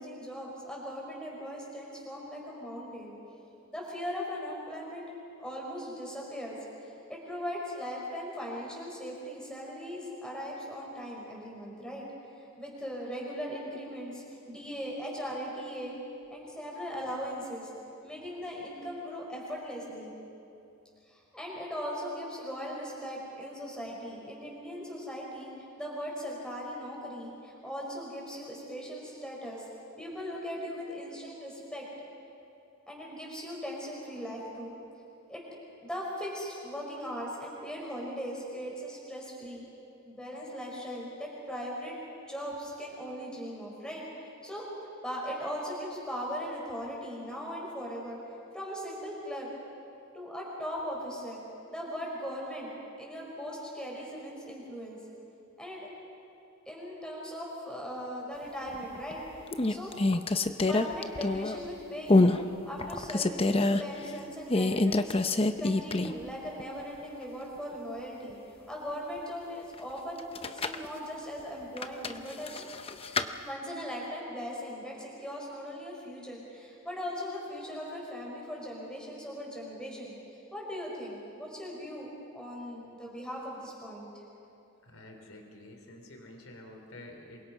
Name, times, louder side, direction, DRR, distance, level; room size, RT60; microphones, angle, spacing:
voice 1, 0.0-3.1 3.7-5.1 5.4-12.1 12.6-15.9 16.3-17.7 18.0-20.1 21.1-25.5 25.8-29.7 30.0-31.9 32.9-34.7 35.3-35.4 35.8-39.6 40.0-42.0 42.3-44.7 45.0-48.2 48.5-49.5 50.1-51.4 51.7-52.7 53.0-55.0 55.6-55.9 56.6-59.2 59.7-59.9 60.7-65.2 65.6-68.4 68.7-72.6 73.4-80.2 80.5-84.2, equal, 5° left, -3 dB, 5.1 m, -39 dB
sound 1, 58.7-59.1 59.5-61.7 62.1-62.4 62.8-63.8 64.5-66.3 66.6-66.7 70.2-70.9 71.8-73.3, left 2 dB, 25° left, 0.8 m, -26 dB
voice 2, 84.8-87.4, left 1 dB, 85° left, 3 dB, 3.2 m, -49 dB
27.5 x 23.5 x 5.6 m, 2.7 s
head